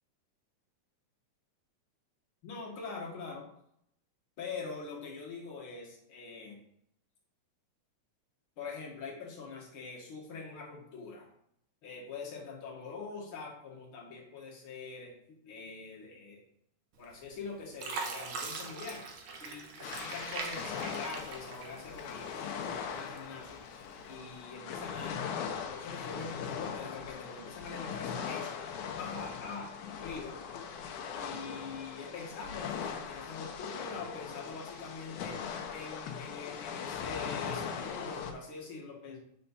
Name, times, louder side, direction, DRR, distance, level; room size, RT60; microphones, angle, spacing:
voice 1, 2.4-3.5 4.4-6.6 8.6-11.3 11.8-15.1 15.4-16.4 17.0-19.0 19.4-25.2 25.7-30.4 31.2-39.2, left 4 dB, 50° left, -2 dB, 2.0 m, -44 dB
Fill (with liquid), 17.0-17.4 17.8-22.2 22.6-23.4 24.0-24.1, right 4 dB, 70° right, 1.2 m, -41 dB
sound 1, 19.8-38.3, left 7 dB, 80° left, 2.2 m, -40 dB
7.9 x 4.3 x 4.1 m, 0.73 s
omnidirectional pair, 3.5 m